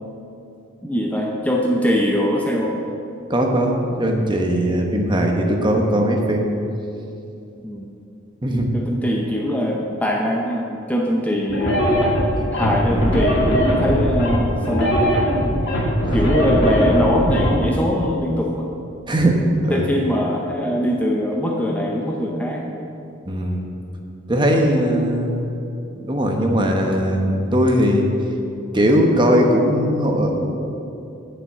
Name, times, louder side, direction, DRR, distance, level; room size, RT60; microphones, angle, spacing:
voice 1, 0.8-2.8 7.6-7.9 8.7-11.9 12.5-15.0 16.1-18.7 19.7-22.8, equal, 5° left, -1 dB, 0.6 m, -22 dB
voice 2, 3.3-6.5 8.4-8.7 15.4-15.6 19.1-19.9 23.3-23.7 24.3-25.4 26.0-28.1 28.7-30.5, equal, 25° right, 2 dB, 1.0 m, -19 dB
sound 1, 11.5-17.5, equal, 60° left, 2.0 m, -19 dB
9.0 x 6.8 x 7.2 m, 2.7 s
head